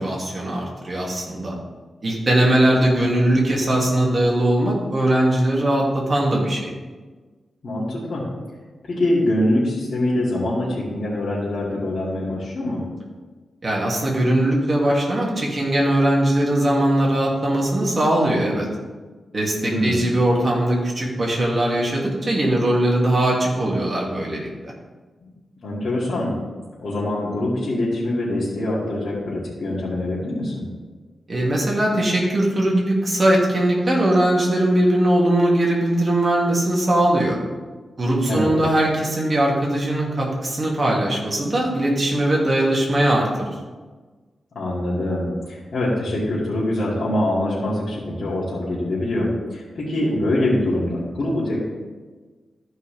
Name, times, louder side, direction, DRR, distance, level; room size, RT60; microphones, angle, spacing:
voice 1, 0.0-1.5 2.0-6.7 13.6-18.7 19.3-24.7 31.3-37.4 38.0-43.3, right 1 dB, 40° right, -3 dB, 2.5 m, -20 dB
voice 2, 7.6-8.2 8.9-12.8 19.6-20.0 25.6-26.3 26.8-30.6 38.3-38.6 44.5-51.6, left 1 dB, 65° left, -10 dB, 2.7 m, -24 dB
13.5 x 5.5 x 3.5 m, 1.3 s
wide cardioid pair, 105°, 0 cm